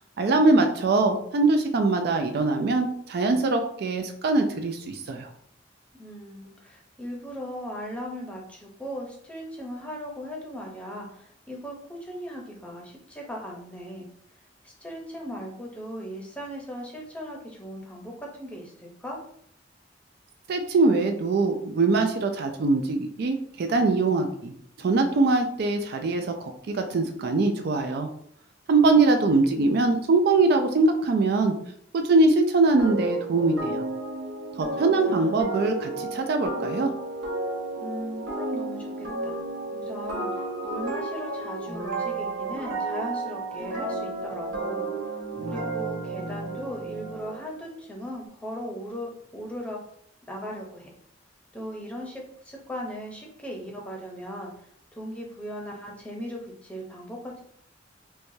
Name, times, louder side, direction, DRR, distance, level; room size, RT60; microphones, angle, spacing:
voice 1, 0.2-5.3 20.5-24.5 24.8-28.1 28.7-31.5 31.9-33.9 34.6-36.9, right 3 dB, 55° right, 5 dB, 0.4 m, -22 dB
voice 2, 5.9-14.1 14.6-19.2 34.8-35.4 37.8-39.4 39.7-44.9 45.5-49.9 50.3-50.9 51.5-54.5 54.9-57.4, equal, 5° left, -1 dB, 0.7 m, -38 dB
sound 1, 32.8-47.4, right 2 dB, 85° right, 0.9 m, -32 dB
4.6 x 2.2 x 2.7 m, 0.66 s
head